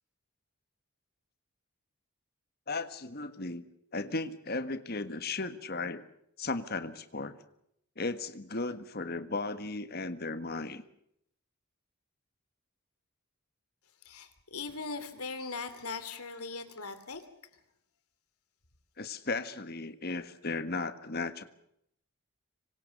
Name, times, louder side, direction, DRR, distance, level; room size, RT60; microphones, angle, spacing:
voice 1, 2.7-3.6 3.9-6.0 6.4-7.4 8.0-10.8 19.0-21.4, left 3 dB, 45° left, 11 dB, 1.5 m, -35 dB
voice 2, 14.0-17.2, left 4 dB, 85° left, 10 dB, 3.1 m, -40 dB
26.0 x 24.5 x 6.7 m, 0.75 s
head